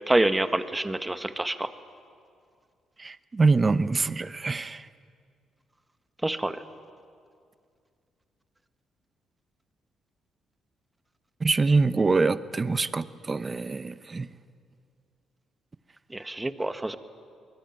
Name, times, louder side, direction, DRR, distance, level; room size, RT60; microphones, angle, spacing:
voice 1, 0.1-1.7 6.2-6.6 16.1-17.0, right 1 dB, 15° right, 1.3 m, -26 dB
voice 2, 3.0-4.9 11.4-14.3, right 3 dB, 30° right, 0.8 m, -25 dB
24.0 x 20.5 x 9.0 m
cardioid pair, 90°, 0 cm